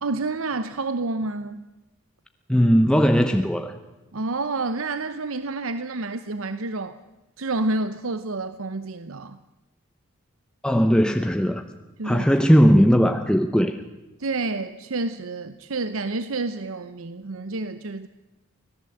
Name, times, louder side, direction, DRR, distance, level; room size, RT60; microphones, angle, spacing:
voice 1, 0.0-1.7 4.1-7.0 7.4-9.4 12.0-12.3 14.2-18.1, right 3 dB, 80° right, 12 dB, 0.8 m, -29 dB
voice 2, 2.5-3.8 10.6-11.6 12.0-13.8, equal, 5° left, 6 dB, 0.8 m, -18 dB
25.0 x 17.5 x 7.9 m, 1.1 s
head